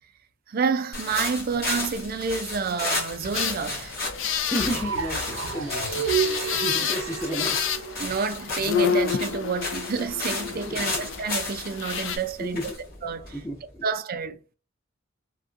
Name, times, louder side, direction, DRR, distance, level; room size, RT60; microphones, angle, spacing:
voice 1, 0.5-4.0 6.8-6.9 8.0-12.7 13.0-13.4 13.8-14.6, right 5 dB, 50° right, 0.4 m, -29 dB
sound 1, 0.9-13.7, left 2 dB, 50° left, 1.7 m, -33 dB
sound 2, 3.3-12.2, left 7 dB, 70° left, 0.4 m, -30 dB
voice 2, 4.5-7.6 10.7-11.0 12.5-12.6 13.3-13.8, equal, 15° left, 0.6 m, -33 dB
sound 3, 4.6-8.6, right 7 dB, 85° right, 0.7 m, -30 dB
3.5 x 2.2 x 2.4 m
head